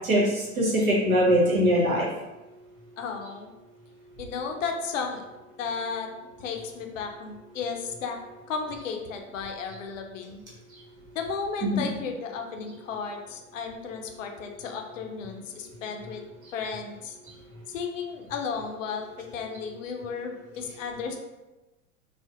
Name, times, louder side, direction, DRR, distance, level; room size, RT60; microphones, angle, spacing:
voice 1, 0.0-2.1 11.6-11.8, equal, 75° right, -4 dB, 0.9 m, -22 dB
voice 2, 3.0-3.5 4.2-5.2 5.6-6.1 6.4-8.2 8.5-10.4 11.1-16.2 16.5-17.2 17.7-19.1 19.3-21.2, left 5 dB, 65° left, 3 dB, 0.5 m, -34 dB
2.4 x 2.0 x 2.5 m, 1.1 s
figure-of-eight pair, 80°, 42 cm